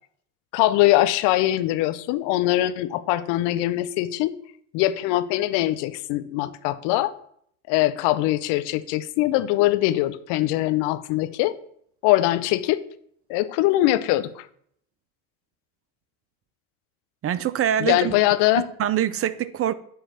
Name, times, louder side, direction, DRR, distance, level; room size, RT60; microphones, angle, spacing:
voice 1, 0.5-4.3 4.7-7.1 7.7-11.5 12.0-12.8 13.3-14.5 17.8-18.7, left 15 dB, 70° left, 0.7 m, -22 dB
voice 2, 17.2-18.2 18.6-19.7, right 10 dB, 35° right, 0.5 m, -24 dB
9.2 x 3.2 x 6.1 m
hypercardioid pair, 70°, 43 cm